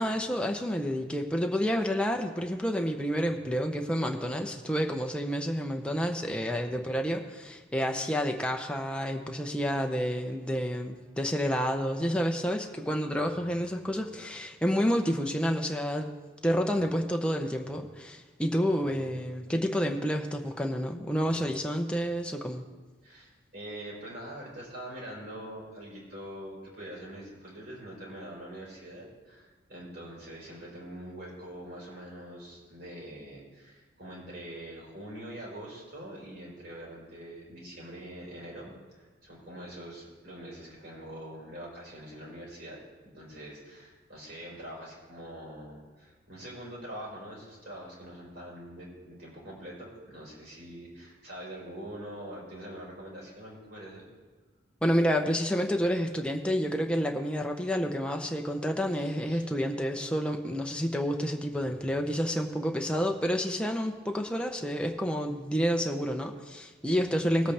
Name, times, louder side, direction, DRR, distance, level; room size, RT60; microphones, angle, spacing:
voice 1, 0.0-16.1 16.4-22.6 54.8-67.5, equal, 5° left, 3 dB, 0.7 m, -29 dB
voice 2, 23.0-54.0 58.9-59.4 67.2-67.4, right 1 dB, 50° right, -5 dB, 4.1 m, -44 dB
19.0 x 8.2 x 3.4 m, 1.4 s
head